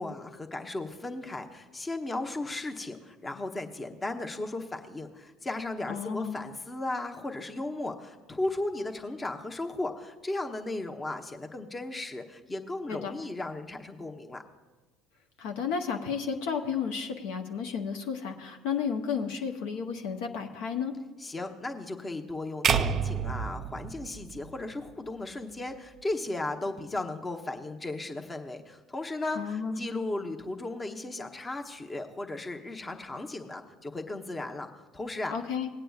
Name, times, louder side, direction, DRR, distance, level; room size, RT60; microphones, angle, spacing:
voice 1, 0.0-14.4 21.2-35.3, left 2 dB, 25° left, 4 dB, 0.9 m, -36 dB
voice 2, 5.9-6.4 12.9-13.1 15.4-20.9 29.3-29.8 35.3-35.7, left 6 dB, 65° left, 4 dB, 0.7 m, -32 dB
sound 1, 22.6-24.9, right 7 dB, 45° right, 0.4 m, -29 dB
19.0 x 8.9 x 2.4 m, 1.3 s
hypercardioid pair, 65°, 0 cm